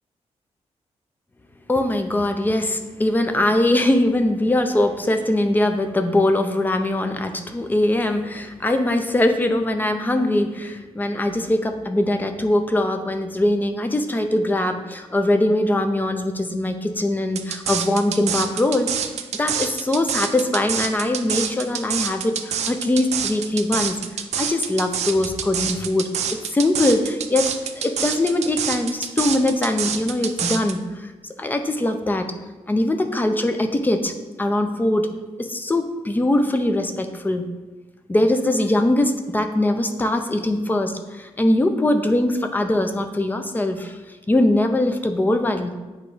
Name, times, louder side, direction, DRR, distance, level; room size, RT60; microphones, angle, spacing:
voice 1, 1.7-24.0 24.4-26.1 26.5-31.1 31.4-32.3 32.7-34.1 34.4-35.1 35.4-37.5 38.1-44.0 44.3-45.8, left 1 dB, 15° left, 6 dB, 0.5 m, -21 dB
sound 1, 17.3-30.7, right 8 dB, 75° right, 0.5 m, -26 dB
8.1 x 3.0 x 4.8 m, 1.2 s
wide cardioid pair, 145°, 11 cm